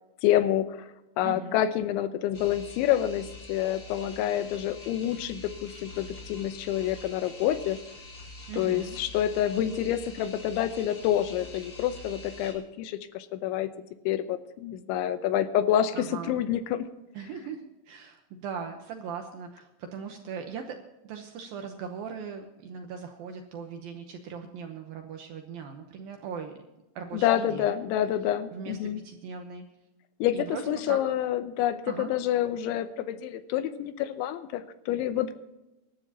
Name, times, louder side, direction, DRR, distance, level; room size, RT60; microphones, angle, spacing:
voice 1, 0.2-0.9 1.2-7.8 8.6-13.7 14.1-16.9 27.1-29.0 30.2-35.3, left 11 dB, 90° left, 11 dB, 3.2 m, -28 dB
voice 2, 1.2-1.6 8.5-9.0 15.9-16.4 17.1-26.5 27.0-27.8 28.5-28.8 29.0-29.6 30.3-31.0 31.9-32.1, right 6 dB, 75° right, 4 dB, 2.2 m, -39 dB
sound 1, 2.3-12.5, left 2 dB, 40° left, 4.8 m, -45 dB
24.5 x 12.0 x 2.9 m, 0.98 s
omnidirectional pair, 5.3 m